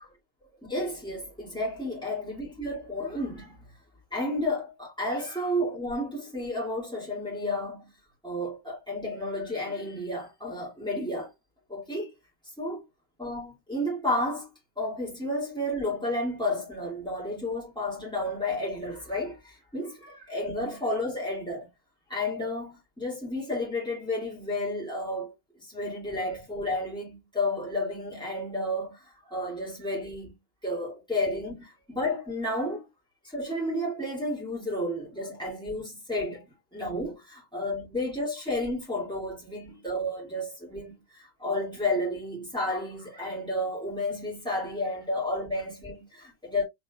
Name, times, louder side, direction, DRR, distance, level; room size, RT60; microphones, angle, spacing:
voice 1, 0.7-3.6 4.1-7.9 8.2-11.3 11.7-12.1 12.6-12.8 13.2-14.5 14.8-21.7 22.1-29.0 29.3-30.4 30.6-32.8 33.3-36.4 36.7-41.0 41.4-46.6, left 1 dB, ahead, 2.1 m, -31 dB
4.5 x 3.3 x 2.3 m
omnidirectional pair, 2.0 m